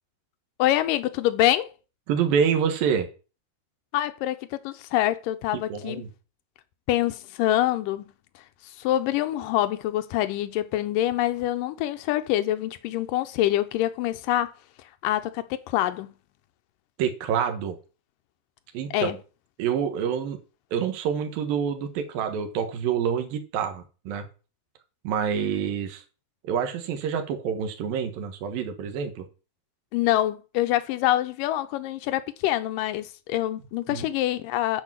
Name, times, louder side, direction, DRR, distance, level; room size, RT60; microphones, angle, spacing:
voice 1, 0.6-1.7 3.9-6.0 6.9-8.1 8.6-14.5 15.0-16.1 18.9-19.2 29.9-34.8, left 14 dB, 80° left, 2.1 m, -25 dB
voice 2, 2.1-3.1 5.5-6.1 17.0-17.8 18.7-19.2 19.6-20.4 20.7-24.3 25.0-26.0 26.4-29.3 33.9-34.0, right 7 dB, 70° right, 3.1 m, -27 dB
10.5 x 5.0 x 7.5 m
omnidirectional pair, 4.4 m